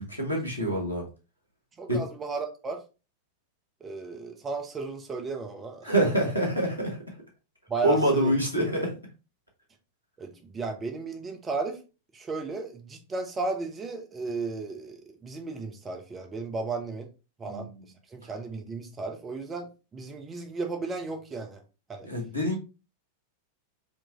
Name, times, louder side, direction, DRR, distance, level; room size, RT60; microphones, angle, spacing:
voice 1, 0.1-1.1 1.9-2.0 5.8-7.0 7.8-8.9 17.5-17.6 22.0-22.6, right 1 dB, 90° left, 1.3 m, -26 dB
voice 2, 1.8-2.8 3.8-5.9 7.7-8.3 10.2-11.8 12.1-17.1 17.4-17.7 18.1-21.6 21.9-22.1, right 3 dB, 20° right, 0.8 m, -34 dB
4.4 x 3.0 x 2.9 m
figure-of-eight pair, 90°, 0 cm